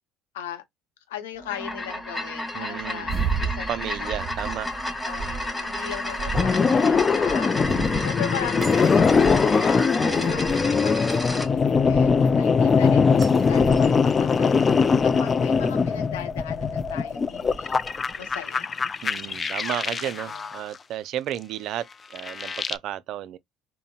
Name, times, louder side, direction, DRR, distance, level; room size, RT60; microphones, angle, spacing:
voice 1, 1.1-4.2 5.0-18.8 20.0-20.4, left 9 dB, 85° left, 0.7 m, -39 dB
sound 1, 1.4-11.5, left 1 dB, 10° left, 1.0 m, -31 dB
voice 2, 2.5-3.1 3.7-4.7 10.0-10.5 19.0-23.4, right 12 dB, 60° right, 0.3 m, -33 dB
sound 2, 3.0-18.2, right 6 dB, 35° right, 0.8 m, -36 dB
sound 3, 6.3-20.6 22.2-22.8, left 5 dB, 35° left, 0.3 m, -21 dB
3.7 x 2.0 x 2.3 m
hypercardioid pair, 65°, 0 cm